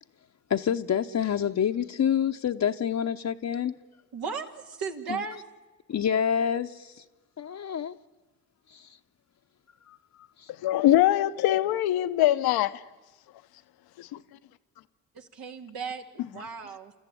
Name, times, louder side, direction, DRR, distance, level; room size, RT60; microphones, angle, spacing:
voice 1, 0.5-3.8 5.1-5.2 5.9-7.0 7.4-8.0 8.7-9.0 9.9-10.5, left 8 dB, 45° left, 0.9 m, -28 dB
voice 2, 4.1-5.4 15.1-16.9, right 5 dB, 70° right, 2.3 m, -36 dB
voice 3, 10.6-12.8 14.0-14.2, left 14 dB, 80° left, 1.0 m, -23 dB
29.0 x 14.0 x 9.9 m
supercardioid pair, 55°, 37 cm